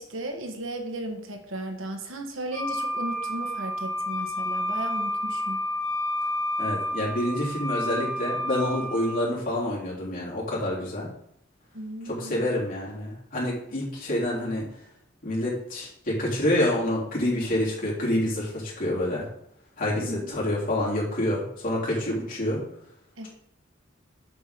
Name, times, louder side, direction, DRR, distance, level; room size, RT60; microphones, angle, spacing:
voice 1, 0.0-5.6 11.7-12.6 20.0-20.4 23.2-23.3, right 1 dB, 90° right, 4 dB, 1.4 m, -35 dB
Wind instrument woodwind instrument, 2.5-9.3, left 1 dB, 25° left, 3.3 m, -30 dB
voice 2, 6.6-11.1 12.0-14.6 15.2-19.3 19.8-22.6, left 1 dB, 45° left, -5 dB, 3.3 m, -27 dB
6.9 x 5.8 x 5.2 m, 0.74 s
head